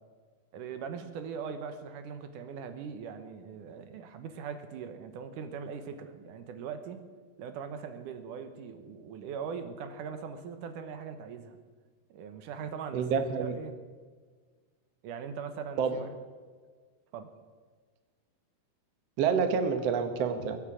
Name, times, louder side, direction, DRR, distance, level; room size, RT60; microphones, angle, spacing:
voice 1, 0.5-7.0 7.4-11.6 12.1-13.7 15.0-16.1 17.1-17.3, right 6 dB, 70° right, 8 dB, 2.2 m, -40 dB
voice 2, 12.9-13.5 15.8-15.9 19.2-20.6, right 6 dB, 85° right, 8 dB, 1.4 m, -28 dB
22.5 x 8.5 x 6.3 m, 1.5 s
omnidirectional pair, 4.6 m